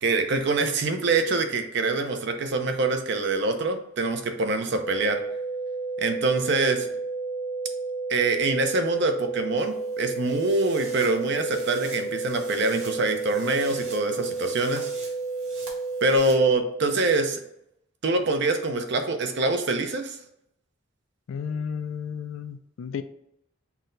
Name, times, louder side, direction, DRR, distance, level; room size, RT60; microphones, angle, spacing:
voice 1, 0.0-5.2 6.0-6.9 8.1-14.9 16.0-17.4 18.0-20.2, right 3 dB, 55° right, 6 dB, 0.6 m, -25 dB
sound 1, 4.7-16.2, right 3 dB, 20° left, 0.5 m, -31 dB
sound 2, 9.6-16.3, right 3 dB, 90° right, 1.6 m, -46 dB
voice 2, 21.3-23.0, left 7 dB, 75° left, 11 dB, 0.3 m, -33 dB
6.0 x 2.2 x 3.8 m, 0.77 s
head